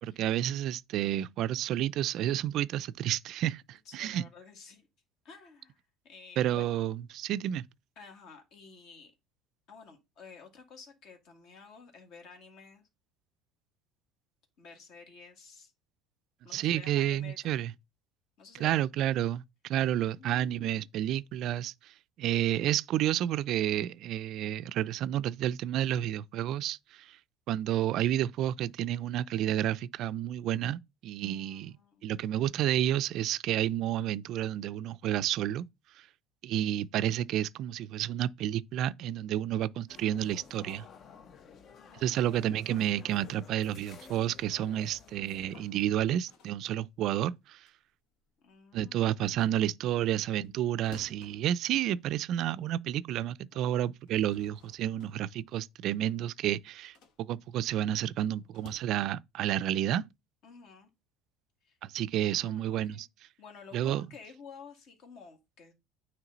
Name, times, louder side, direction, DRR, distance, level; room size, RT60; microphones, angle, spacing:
voice 1, 0.0-4.2 6.4-7.6 16.5-17.7 18.6-21.7 22.2-26.8 27.5-31.7 32.0-35.6 36.4-40.8 41.9-47.6 48.7-56.9 57.2-60.1 61.9-63.1 63.7-64.1, right 11 dB, 50° right, 0.3 m, -30 dB
voice 2, 3.9-4.9 5.2-6.9 8.0-9.1 9.7-12.9 14.6-15.7 16.4-17.7 18.4-18.8 20.0-20.6 31.2-32.2 41.5-42.4 48.4-49.6 49.9-50.1 53.5-54.0 60.4-60.9 61.6-61.8 62.2-63.1 63.4-65.7, left 5 dB, 55° left, 2.1 m, -52 dB
sound 1, 39.9-45.6, left 6 dB, 35° left, 0.5 m, -53 dB
sound 2, 45.3-48.8 49.2-52.7 53.1-53.2 53.8-58.8, left 3 dB, 70° left, 1.4 m, -57 dB
9.1 x 3.1 x 4.0 m
cardioid pair, 140°, 0 cm